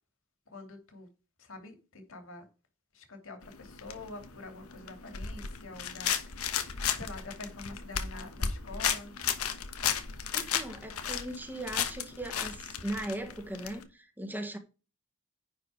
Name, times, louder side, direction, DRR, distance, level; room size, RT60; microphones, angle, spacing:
voice 1, 0.5-1.1 1.4-2.5 2.9-6.4 6.9-9.2, left 2 dB, 65° left, 2.6 m, -46 dB
sound 1, 3.4-13.8, left 8 dB, 85° left, 1.3 m, -35 dB
voice 2, 10.3-14.6, right 1 dB, 10° right, 1.6 m, -38 dB
10.5 x 4.8 x 4.9 m
head